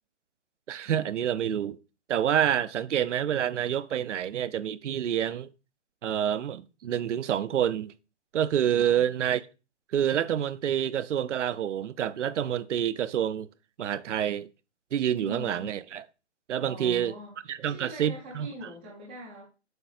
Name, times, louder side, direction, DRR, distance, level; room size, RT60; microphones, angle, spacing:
voice 1, 0.7-1.8 2.1-5.5 6.0-7.9 8.3-9.4 9.9-13.5 13.8-14.5 14.9-16.1 16.5-17.1 17.5-18.5, right 10 dB, 75° right, 0.6 m, -27 dB
voice 2, 15.2-15.7 16.6-17.3 17.7-19.4, right 1 dB, 10° right, 0.4 m, -42 dB
7.9 x 5.5 x 2.4 m
hypercardioid pair, 150°, 36 cm